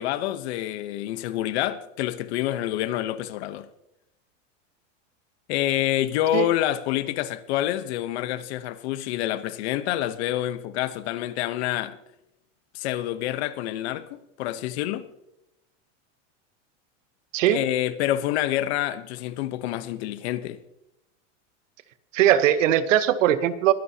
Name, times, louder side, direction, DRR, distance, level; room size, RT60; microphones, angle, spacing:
voice 1, 0.0-3.7 5.5-11.9 12.7-15.1 17.5-20.6, left 13 dB, 55° left, 1.0 m, -27 dB
voice 2, 22.1-23.7, right 11 dB, 80° right, 1.1 m, -20 dB
22.0 x 11.0 x 2.9 m
supercardioid pair, 160°, 38 cm